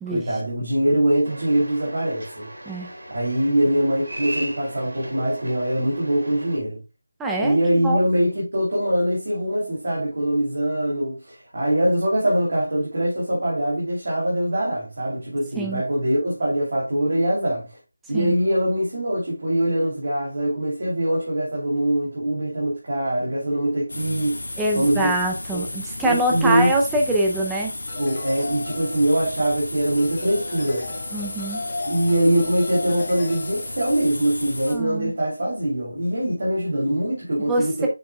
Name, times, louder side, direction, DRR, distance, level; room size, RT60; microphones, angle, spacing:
voice 1, 0.1-2.5 3.1-6.8 7.4-17.7 18.1-24.4 24.7-25.1 25.5-25.6 26.0-26.7 28.0-30.9 31.8-37.9, right 1 dB, 40° right, 2.9 m, -23 dB
sound 1, 1.2-6.6, right 1 dB, 70° right, 2.9 m, -37 dB
voice 2, 7.2-7.6 7.8-8.0 15.6-15.8 18.1-18.4 24.6-27.8 31.1-31.7 34.7-35.1 37.5-37.9, right 1 dB, 5° right, 0.5 m, -24 dB
sound 2, 23.9-34.8, left 2 dB, 60° left, 1.7 m, -34 dB
sound 3, 27.9-29.6 30.0-33.9, left 2 dB, 20° left, 1.2 m, -36 dB
7.0 x 6.7 x 2.3 m
figure-of-eight pair, 180°, 0 cm